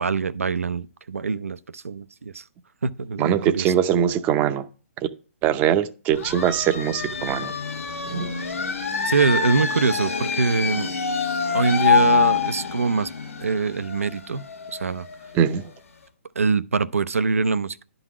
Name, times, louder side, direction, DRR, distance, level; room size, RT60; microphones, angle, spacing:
voice 1, 0.0-2.4 2.8-3.7 9.0-10.9 11.5-13.1 13.4-14.4 14.7-15.1 16.4-17.8, right 4 dB, 80° right, 0.6 m, -24 dB
voice 2, 3.2-4.7 5.4-7.5 8.1-8.3 15.3-15.7, right 9 dB, 20° right, 0.6 m, -22 dB
sound 1, 6.1-15.6, left 6 dB, 80° left, 1.4 m, -25 dB
11.0 x 4.0 x 6.0 m
hypercardioid pair, 140°, 7 cm